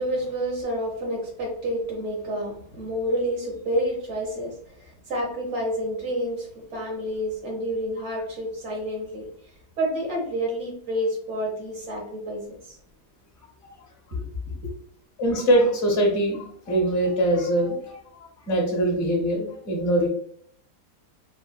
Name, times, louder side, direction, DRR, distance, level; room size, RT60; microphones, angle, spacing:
voice 1, 0.0-4.5 4.8-9.3 9.8-12.8 14.1-14.2, equal, 50° right, -2 dB, 1.0 m, -29 dB
voice 2, 15.2-20.1, right 1 dB, 50° left, -1 dB, 0.9 m, -23 dB
3.5 x 2.3 x 2.2 m, 0.64 s
omnidirectional pair, 2.1 m